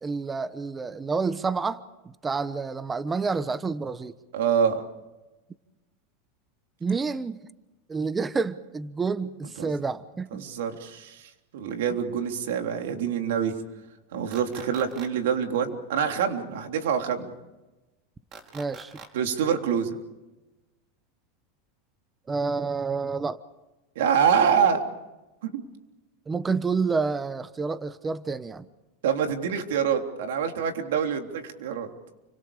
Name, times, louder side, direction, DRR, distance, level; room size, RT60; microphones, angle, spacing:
voice 1, 0.0-4.2 6.8-7.4 7.9-10.5 18.5-19.0 22.3-23.4 26.3-28.7, right 4 dB, 15° right, 14 dB, 1.0 m, -29 dB
voice 2, 4.3-4.8 9.6-9.7 10.4-11.2 11.5-13.5 14.1-17.3 19.1-19.9 23.9-24.8 25.4-25.6 29.0-31.9, right 7 dB, 80° right, 4 dB, 3.4 m, -25 dB
sound 1, 14.3-15.1 18.3-19.1, right 5 dB, 40° right, 5.0 m, -44 dB
29.5 x 25.5 x 5.1 m, 1.1 s
supercardioid pair, 125°, 0 cm